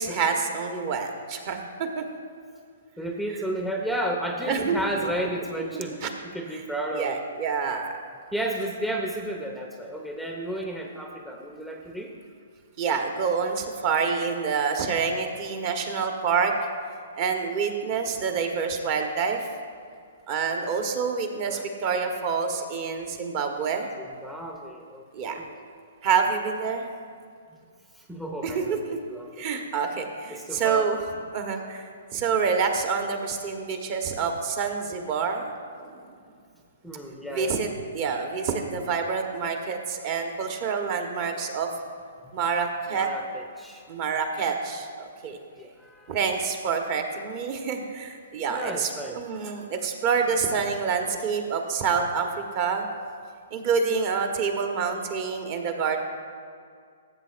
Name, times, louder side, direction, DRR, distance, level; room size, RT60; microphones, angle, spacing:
voice 1, 0.0-2.0 4.5-5.1 5.7-6.1 6.9-7.9 12.8-16.5 17.1-19.4 20.3-23.9 25.1-25.4 26.0-26.8 28.4-29.0 29.4-31.0 31.3-31.9 32.1-35.5 35.8-35.9 37.3-37.7 37.9-41.7 42.3-43.1 43.9-45.4 46.1-52.3 52.5-52.8 53.5-56.0, right 5 dB, 40° right, 4 dB, 1.1 m, -27 dB
voice 2, 3.0-7.2 8.3-12.1 21.4-21.7 24.0-25.5 28.0-29.5 30.3-30.9 36.8-37.6 42.9-43.8 45.6-46.2 48.5-49.2, right 1 dB, ahead, 1 dB, 0.6 m, -33 dB
15.0 x 7.7 x 2.5 m, 2.2 s
hypercardioid pair, 130°, 0 cm